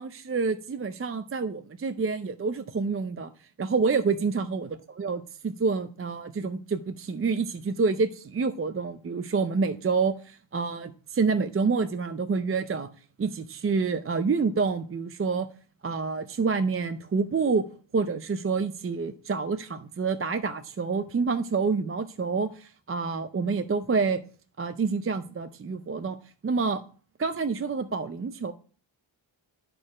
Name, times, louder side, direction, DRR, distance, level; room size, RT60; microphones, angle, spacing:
voice 1, 0.0-3.3 3.6-12.9 13.2-15.5 15.8-17.7 17.9-24.2 24.6-26.2 26.4-26.8 27.2-28.5, right 4 dB, 30° right, 0.5 m, -28 dB
12.0 x 4.3 x 4.9 m
wide cardioid pair, 110°, 49 cm